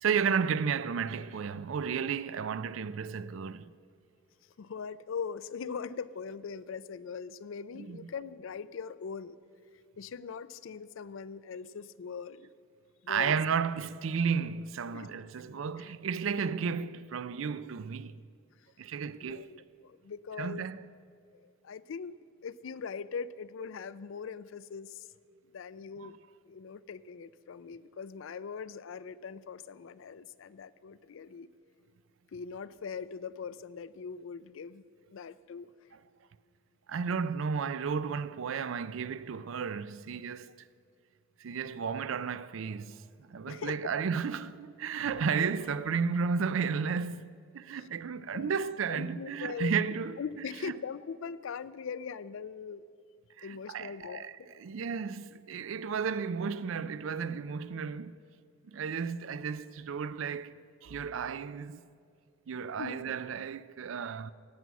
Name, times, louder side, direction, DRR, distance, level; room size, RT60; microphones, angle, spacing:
voice 1, 0.0-3.7 7.7-8.1 13.1-18.2 18.8-19.5 20.4-20.8 26.0-26.1 36.9-40.5 41.4-50.2 50.6-50.7 53.4-54.3 54.6-58.2 58.7-61.8 62.5-64.3, right 6 dB, 65° right, 0.4 m, -33 dB
voice 2, 4.6-9.4 10.0-12.5 13.0-13.3 14.9-15.1 19.2-20.7 21.3-22.1 22.4-25.1 25.5-26.2 26.5-31.5 32.3-34.8 35.1-35.7 43.5-43.9 47.7-47.9 48.3-48.6 48.9-49.8 50.2-52.8 53.4-54.6 62.8-63.2, left 6 dB, 65° left, 0.4 m, -41 dB
17.0 x 6.1 x 8.2 m
head